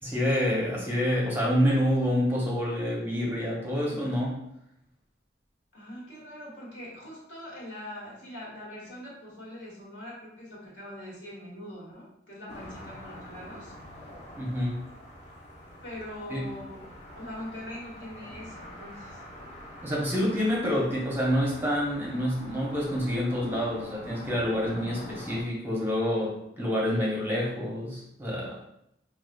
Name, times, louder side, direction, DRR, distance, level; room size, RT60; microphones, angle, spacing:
voice 1, 0.0-4.4 14.4-14.8 16.3-16.5 19.8-28.6, equal, 10° right, -4 dB, 0.7 m, -27 dB
voice 2, 5.7-13.7 15.8-16.9 17.1-19.2, left 1 dB, 75° left, -6 dB, 1.5 m, -42 dB
sound 1, 12.5-25.4, left 1 dB, 40° left, 0.7 m, -45 dB
4.8 x 2.3 x 2.2 m, 0.78 s
head